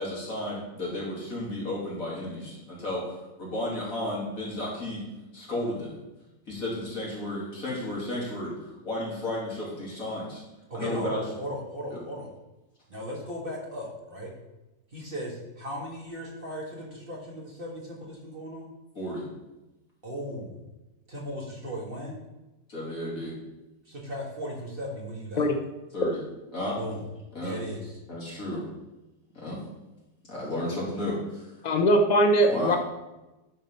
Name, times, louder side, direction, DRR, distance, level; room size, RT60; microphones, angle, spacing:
voice 1, 0.0-5.1 5.3-5.9 6.5-10.4 10.7-11.2 11.9-12.0 18.9-19.3 22.7-23.3 25.9-26.2 26.5-26.8 27.3-27.5 28.1-28.6 29.3-29.6 30.3-31.5 32.5-32.8, left 1 dB, 50° left, -5 dB, 3.3 m, -33 dB
voice 2, 10.7-12.3 12.9-14.3 14.9-18.7 20.0-20.6 21.1-22.2 23.9-25.5 26.8-27.0 27.4-28.0, equal, 30° right, -3 dB, 1.9 m, -37 dB
voice 3, 31.6-32.8, equal, 85° left, 4 dB, 0.3 m, -21 dB
11.0 x 4.3 x 5.5 m, 1.0 s
omnidirectional pair, 1.9 m